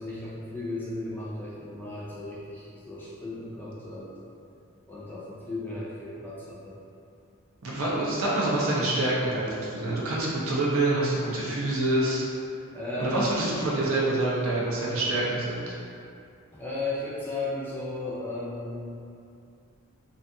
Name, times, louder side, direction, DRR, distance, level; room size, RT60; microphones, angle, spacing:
voice 1, 0.0-4.1 4.9-6.8 12.7-13.4 16.5-18.9, left 2 dB, 10° left, -8 dB, 0.3 m, -35 dB
voice 2, 7.6-12.2 13.0-15.7, right 2 dB, 75° right, -5 dB, 0.6 m, -26 dB
2.5 x 2.4 x 2.6 m, 2.5 s
head